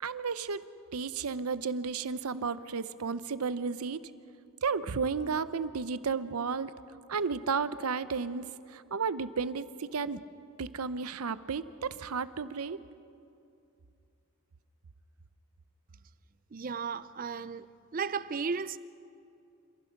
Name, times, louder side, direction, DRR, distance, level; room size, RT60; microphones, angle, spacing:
voice 1, 0.0-0.6 0.9-4.1 4.6-6.7 7.1-8.4 8.7-10.2 10.6-12.8, right 5 dB, 85° right, 0.7 m, -33 dB
voice 2, 16.5-17.7 17.9-18.8, right 5 dB, 40° right, 0.4 m, -34 dB
28.5 x 15.5 x 5.9 m
head